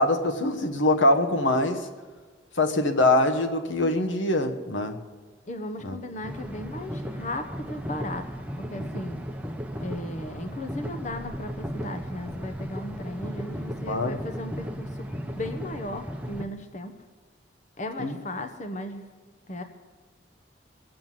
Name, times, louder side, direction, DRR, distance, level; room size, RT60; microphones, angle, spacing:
voice 1, 0.0-1.9 2.6-5.0 5.8-6.0 13.9-14.2 18.0-18.1, left 1 dB, 80° left, 7 dB, 1.2 m, -23 dB
voice 2, 5.5-8.3 8.6-9.4 9.8-17.0 17.8-19.1 19.5-19.6, left 1 dB, 40° left, 6 dB, 0.9 m, -36 dB
sound 1, 6.2-16.4, equal, 5° right, 0.8 m, -35 dB
21.5 x 7.9 x 7.5 m, 1.4 s
head